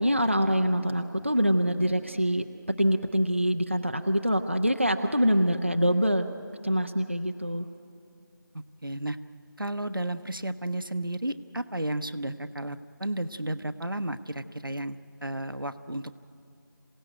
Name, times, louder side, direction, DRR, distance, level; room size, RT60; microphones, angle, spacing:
voice 1, 0.0-2.5 2.8-6.3 6.6-7.7, equal, 35° right, 6 dB, 0.7 m, -25 dB
voice 2, 8.5-9.2 9.6-16.2, right 1 dB, 75° right, 10 dB, 1.1 m, -33 dB
26.5 x 17.0 x 9.2 m, 2.5 s
figure-of-eight pair, 175°, 11 cm